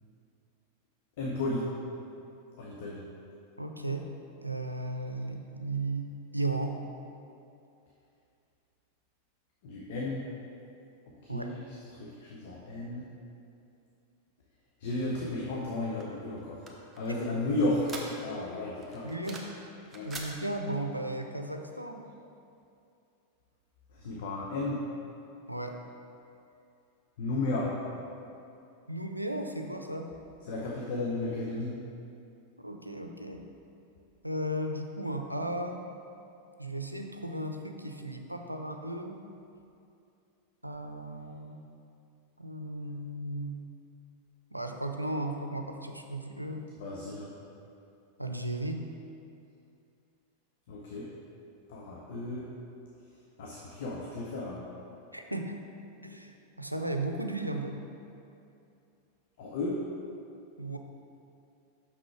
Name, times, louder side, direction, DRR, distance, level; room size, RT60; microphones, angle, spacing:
voice 1, 1.2-1.7 2.6-3.1 9.6-10.2 11.1-11.6 12.0-13.1 14.8-16.6 17.0-18.0 18.2-19.1 19.9-20.1 23.9-24.8 27.2-27.8 30.5-31.8 46.8-47.3 50.7-51.1 51.7-52.5 53.4-54.7 59.4-59.9, left 2 dB, 55° left, -3 dB, 0.9 m, -33 dB
voice 2, 3.6-4.1 4.4-6.8 11.3-11.5 19.0-19.4 20.0-22.0 25.5-25.8 28.9-30.1 32.6-33.4 34.2-35.8 36.6-39.2 40.6-41.6 42.4-43.6 44.5-46.7 48.2-48.8 55.1-55.6 56.0-57.9 60.6-60.8, right 1 dB, 90° right, 4 dB, 0.5 m, -35 dB
sound 1, 16.0-18.5 18.8-19.6 19.9-20.3, right 3 dB, 15° right, 1.0 m, -44 dB
6.1 x 6.1 x 4.7 m, 2.6 s
figure-of-eight pair, 90°, 0 cm